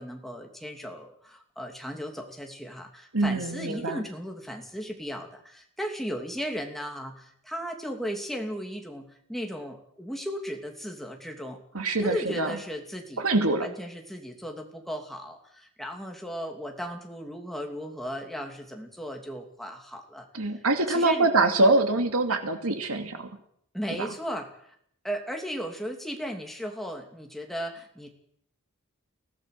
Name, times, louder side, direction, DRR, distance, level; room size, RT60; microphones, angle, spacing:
voice 1, 0.0-11.6 12.0-13.3 13.6-20.3 20.9-21.3 23.7-24.5 25.0-28.1, equal, ahead, 2 dB, 2.8 m, -36 dB
voice 2, 3.1-4.0 11.7-12.5 13.2-13.7 20.3-23.3 24.0-24.1, right 2 dB, 80° right, 6 dB, 2.6 m, -24 dB
23.5 x 17.0 x 6.8 m, 0.69 s
head